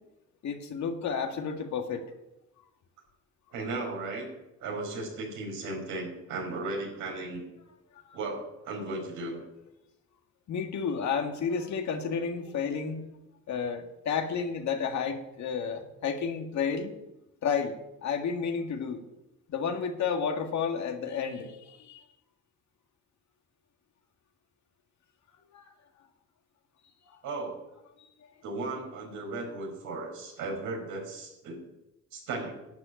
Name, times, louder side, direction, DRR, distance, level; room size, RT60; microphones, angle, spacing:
voice 1, 0.4-2.1 10.5-13.0 13.5-16.9 17.4-19.0 19.5-22.0 25.5-25.6, left 6 dB, 65° left, 4 dB, 2.0 m, -31 dB
voice 2, 3.5-4.3 4.6-7.4 8.1-9.4 27.2-27.6 28.4-31.6 32.1-32.6, right 2 dB, 90° right, 0 dB, 5.3 m, -36 dB
11.5 x 8.1 x 9.2 m, 0.91 s
cardioid pair, 90°, 30 cm